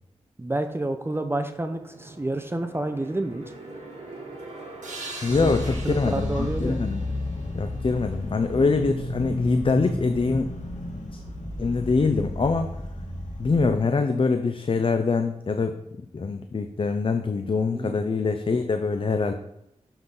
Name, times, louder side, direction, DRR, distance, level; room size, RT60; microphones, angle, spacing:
voice 1, 0.4-3.4 5.4-5.6 5.8-6.8 17.7-18.0, right 2 dB, 20° right, 7 dB, 0.7 m, -29 dB
sound 1, 1.7-6.9, right 2 dB, 55° right, 3.1 m, -43 dB
sound 2, 4.8-8.3, right 3 dB, 80° right, 1.7 m, -43 dB
voice 2, 5.2-7.0 7.5-10.5 11.1-11.2 11.6-12.8 13.4-19.3, left 4 dB, 45° left, 7 dB, 0.6 m, -24 dB
sound 3, 5.3-13.6, left 1 dB, 80° left, 1.4 m, -32 dB
7.1 x 5.9 x 3.9 m, 0.82 s
cardioid pair, 60°, 13 cm